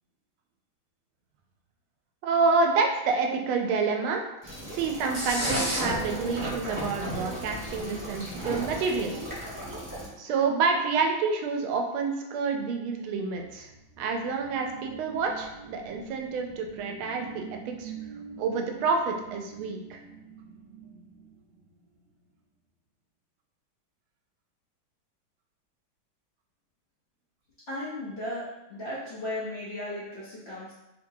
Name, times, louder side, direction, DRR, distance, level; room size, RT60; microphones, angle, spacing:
voice 1, 2.2-4.3 4.7-9.2 10.2-13.7 14.0-17.9 18.4-20.0, right 4 dB, 90° right, 3 dB, 1.4 m, -28 dB
sound 1, 4.4-10.1, equal, 15° right, 0.6 m, -33 dB
sound 2, 13.0-22.3, right 6 dB, 70° right, 1.9 m, -46 dB
voice 2, 27.7-30.7, left 1 dB, 90° left, -9 dB, 0.5 m, -36 dB
4.0 x 2.8 x 2.6 m, 0.94 s
omnidirectional pair, 2.2 m